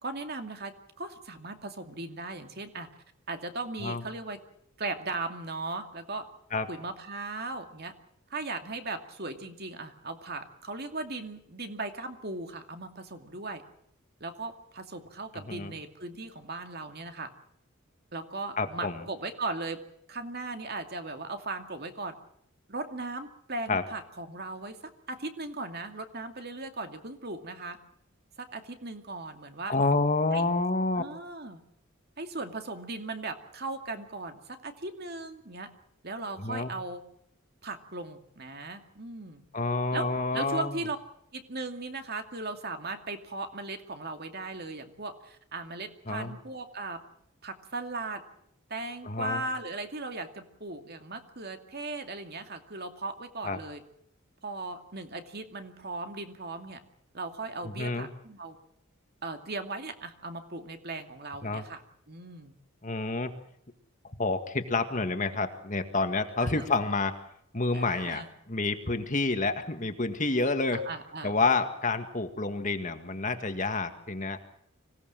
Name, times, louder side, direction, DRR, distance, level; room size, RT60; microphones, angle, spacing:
voice 1, 0.0-2.9 3.3-4.4 4.8-6.2 6.7-7.9 8.3-13.6 14.2-17.3 18.1-19.8 20.1-22.2 22.7-24.8 25.1-27.8 28.4-29.7 30.3-30.4 30.9-31.6 32.2-35.7 36.0-37.0 37.6-39.4 39.9-41.0 41.3-47.0 47.4-48.2 48.7-53.8 54.4-56.8 57.1-58.6 59.2-61.8 62.1-62.5 66.4-66.7 67.7-68.3 70.7-71.3, right 3 dB, 45° right, 6 dB, 2.4 m, -38 dB
voice 2, 18.6-19.0 23.7-23.8 29.7-31.0 36.4-36.7 39.5-40.8 46.1-46.3 49.0-49.4 53.4-53.6 57.8-58.1 61.4-61.6 62.8-63.3 64.2-67.2 67.5-68.2 68.5-70.8 71.2-74.4, left 3 dB, 35° left, 8 dB, 1.9 m, -28 dB
25.5 x 17.5 x 7.6 m, 0.71 s
head